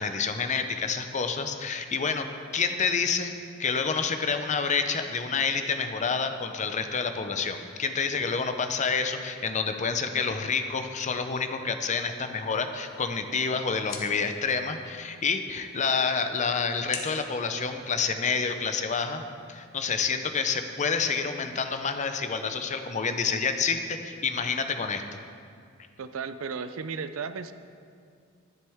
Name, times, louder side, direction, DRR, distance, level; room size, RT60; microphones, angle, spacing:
voice 1, 0.0-3.3 3.6-19.2 19.5-25.2, left 5 dB, 35° left, 8 dB, 0.6 m, -28 dB
sound 1, 12.6-18.6, left 5 dB, 70° left, 1.1 m, -45 dB
voice 2, 26.0-27.5, right 5 dB, 85° right, 11 dB, 0.5 m, -34 dB
11.0 x 10.5 x 3.5 m, 2.3 s
head